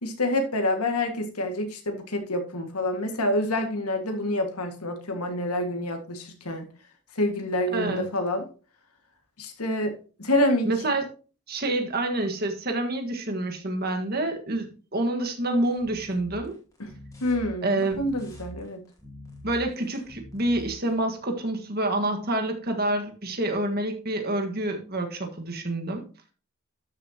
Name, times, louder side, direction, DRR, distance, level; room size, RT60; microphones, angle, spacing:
voice 1, 0.0-6.7 7.1-8.4 9.4-10.7 16.8-16.9 17.2-17.7 18.0-18.8, left 1 dB, 90° left, 5 dB, 2.0 m, -27 dB
voice 2, 7.7-8.0 10.6-11.0 11.5-16.6 17.6-18.1 19.4-26.1, right 1 dB, 45° right, 4 dB, 1.7 m, -27 dB
sound 1, 15.4-20.9, equal, 15° left, 2.4 m, -45 dB
12.5 x 6.9 x 2.9 m, 0.36 s
head